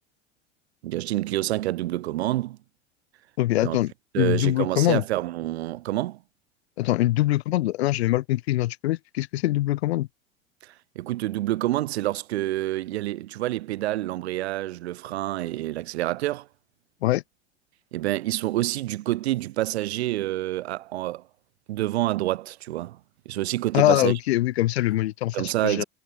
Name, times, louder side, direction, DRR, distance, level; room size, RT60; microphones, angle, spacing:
voice 1, 0.8-2.6 3.6-3.8 4.1-6.2 10.6-16.5 17.9-21.2 21.7-23.0 23.3-24.1 25.3-25.8, right 16 dB, 65° right, 1.6 m, -27 dB
voice 2, 3.4-5.0 6.8-10.1 17.0-17.2 23.7-25.8, left 16 dB, 65° left, 1.7 m, -23 dB
figure-of-eight pair, 75°, 35 cm